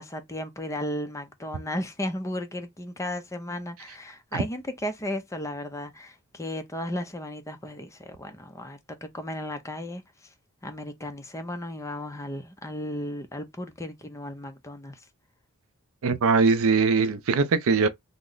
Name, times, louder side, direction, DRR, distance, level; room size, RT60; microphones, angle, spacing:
voice 1, 0.0-10.3 10.6-15.0, left 1 dB, 15° left, 0.5 m, -35 dB
voice 2, 16.0-17.9, right 4 dB, 65° right, 0.4 m, -21 dB
3.0 x 2.0 x 3.7 m
head